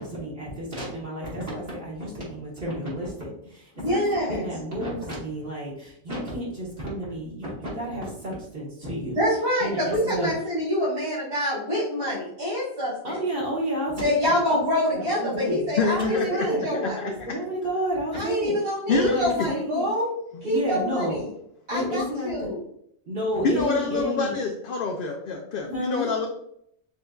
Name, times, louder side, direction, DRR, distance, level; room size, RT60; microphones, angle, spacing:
voice 1, 0.0-9.2 9.6-10.3 13.0-15.7 16.0-18.5 18.9-19.9 20.4-21.2 21.7-22.5 23.1-24.4 25.7-26.3, equal, 60° right, -6 dB, 1.3 m, -31 dB
voice 2, 3.8-4.5 9.1-13.2 14.0-17.0 18.1-20.1 20.4-21.3 21.7-22.6, left 1 dB, 75° right, -11 dB, 2.1 m, -26 dB
voice 3, 15.7-16.3 16.7-17.1 18.9-19.5 23.5-26.3, left 4 dB, 60° left, 1 dB, 0.6 m, -26 dB
6.2 x 2.5 x 2.3 m, 0.72 s
omnidirectional pair, 1.1 m